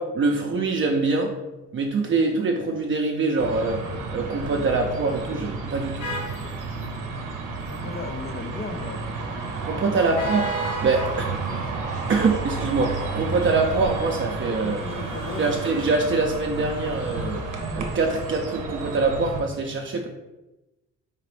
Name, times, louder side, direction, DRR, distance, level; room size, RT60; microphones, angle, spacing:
voice 1, 0.0-1.3 1.7-3.8 4.1-6.1 9.7-10.4 10.8-11.4 12.1-14.8 15.4-17.4 17.8-20.1, right 3 dB, 40° right, 1 dB, 0.5 m, -24 dB
sound 1, 3.4-19.4, right 4 dB, 85° right, 0.7 m, -32 dB
sound 2, 6.0-17.7, right 1 dB, 60° left, 0.8 m, -38 dB
voice 2, 7.6-9.0 9.8-10.0 14.5-15.5, left 3 dB, 35° left, 4 dB, 0.4 m, -36 dB
4.9 x 2.5 x 3.3 m, 1.0 s
cardioid pair, 90°, 30 cm